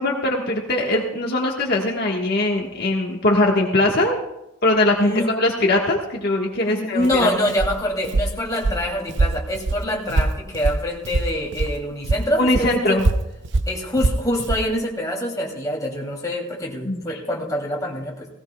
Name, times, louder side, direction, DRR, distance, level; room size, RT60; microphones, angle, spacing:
voice 1, 0.0-4.2 4.6-7.3 12.4-13.0 16.8-17.2, left 2 dB, 50° left, -1 dB, 1.4 m, -21 dB
voice 2, 5.0-5.3 6.6-13.0 13.7-18.3, left 1 dB, 20° left, -2 dB, 2.7 m, -25 dB
Walk footsteps, 7.0-11.8 12.0-14.7, right 2 dB, 60° right, 0.6 m, -23 dB
18.0 x 17.0 x 2.3 m, 0.92 s
head